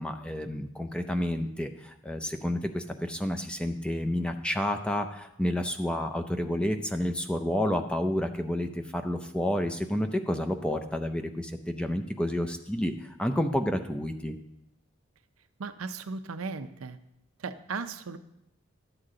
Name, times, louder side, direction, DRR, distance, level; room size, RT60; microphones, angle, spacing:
voice 1, 0.0-14.4, left 1 dB, 5° left, 6 dB, 0.5 m, -30 dB
voice 2, 15.6-17.0 17.4-18.2, right 4 dB, 85° right, 10 dB, 0.6 m, -36 dB
12.5 x 8.1 x 3.8 m, 0.82 s
head